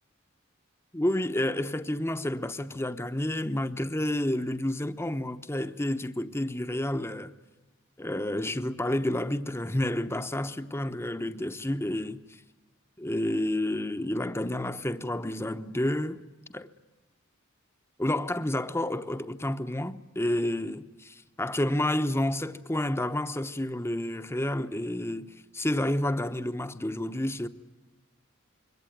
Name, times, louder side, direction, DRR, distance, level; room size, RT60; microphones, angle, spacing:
voice 1, 0.9-7.3 8.0-12.2 13.0-16.2 16.5-16.7 18.0-27.5, left 1 dB, 10° left, 1.0 m, -30 dB
26.0 x 23.0 x 9.3 m
head